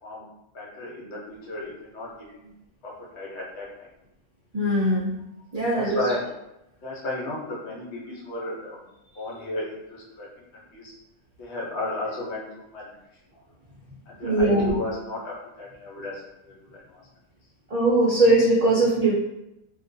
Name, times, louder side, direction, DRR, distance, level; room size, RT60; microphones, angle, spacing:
voice 1, 0.5-2.5 3.0-3.7 5.7-6.2 6.8-8.8 9.1-10.9 11.4-12.4 12.7-13.0 14.1-16.2 16.5-16.6 16.9-17.0, left 2 dB, 70° left, -5 dB, 1.0 m, -34 dB
voice 2, 4.5-5.1 5.5-6.0 14.2-14.7 17.7-19.1, right 2 dB, 55° right, -7 dB, 0.4 m, -20 dB
2.4 x 2.1 x 2.6 m, 0.89 s
omnidirectional pair, 1.2 m